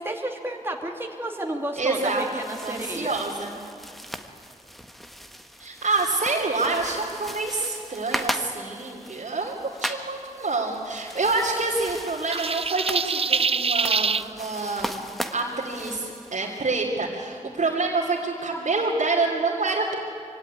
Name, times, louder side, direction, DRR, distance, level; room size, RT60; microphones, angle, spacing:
voice 1, 0.0-3.2, right 1 dB, 15° right, 1 dB, 2.2 m, -31 dB
sound 1, 1.8-16.6, equal, ahead, 1.6 m, -38 dB
voice 2, 1.8-2.2 2.6-3.5 5.6-9.5 9.8-15.0 15.3-20.0, right 3 dB, 70° right, -4 dB, 2.9 m, -27 dB
sound 2, 12.3-14.3, right 5 dB, 45° right, 0.5 m, -24 dB
23.5 x 16.5 x 9.8 m, 2.6 s
cardioid pair, 50°, 13 cm